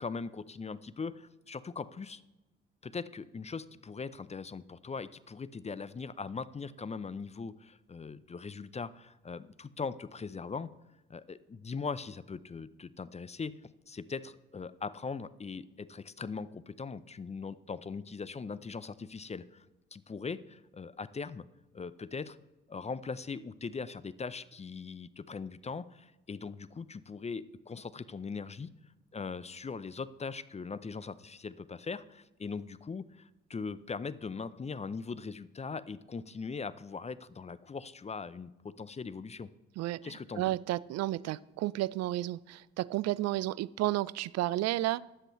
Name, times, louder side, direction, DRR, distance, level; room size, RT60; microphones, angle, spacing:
voice 1, 0.0-2.2 2.8-10.7 11.1-13.6 13.9-19.7 19.9-21.5 21.7-22.4 22.7-28.7 29.1-39.5 40.0-40.5, left 5 dB, 20° left, 17 dB, 0.5 m, -40 dB
voice 2, 40.4-45.0, right 16 dB, 55° right, 20 dB, 0.4 m, -32 dB
20.5 x 7.6 x 3.1 m, 1.0 s
hypercardioid pair, 45°, 32 cm